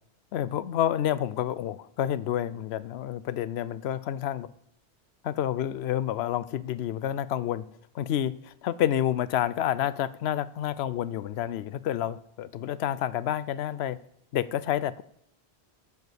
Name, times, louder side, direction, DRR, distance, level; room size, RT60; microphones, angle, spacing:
voice 1, 0.3-4.5 5.2-7.7 7.9-14.0 14.3-15.0, left 11 dB, 75° left, 0.8 m, -29 dB
14.0 x 4.9 x 8.0 m
omnidirectional pair, 1.1 m